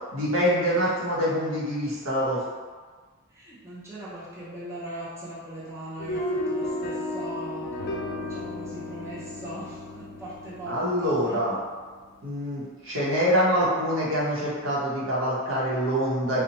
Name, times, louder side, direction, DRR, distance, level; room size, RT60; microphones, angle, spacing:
voice 1, 0.1-2.4 10.7-11.5 12.2-16.4, equal, 75° right, -7 dB, 0.8 m, -25 dB
voice 2, 3.3-7.7 8.2-11.4, right 1 dB, 15° right, -9 dB, 0.5 m, -40 dB
sound 1, 6.0-12.2, left 1 dB, 50° left, 0.4 m, -34 dB
2.7 x 2.1 x 2.8 m, 1.5 s
head